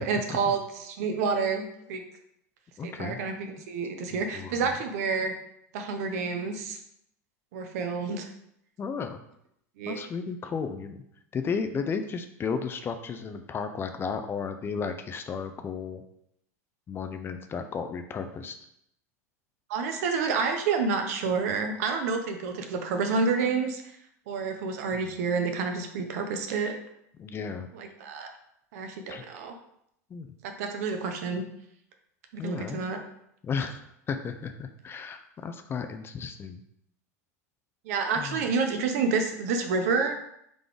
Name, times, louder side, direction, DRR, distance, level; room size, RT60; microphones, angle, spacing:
voice 1, 0.0-2.0 2.8-5.3 5.7-6.8 7.5-8.3 9.8-10.0 19.7-23.8 24.3-26.7 27.7-28.3 28.7-29.5 30.4-31.4 32.3-33.0 37.8-40.2, right 4 dB, 65° right, 5 dB, 0.8 m, -29 dB
voice 2, 2.8-3.2 4.1-4.7 8.8-9.2 9.9-11.0 11.3-16.0 16.9-18.6 27.2-27.7 29.1-29.2 30.1-30.4 32.4-32.9 33.4-36.6 38.2-38.4, left 5 dB, 25° left, 8 dB, 0.4 m, -34 dB
3.8 x 3.3 x 3.8 m, 0.74 s
hypercardioid pair, 100°, 9 cm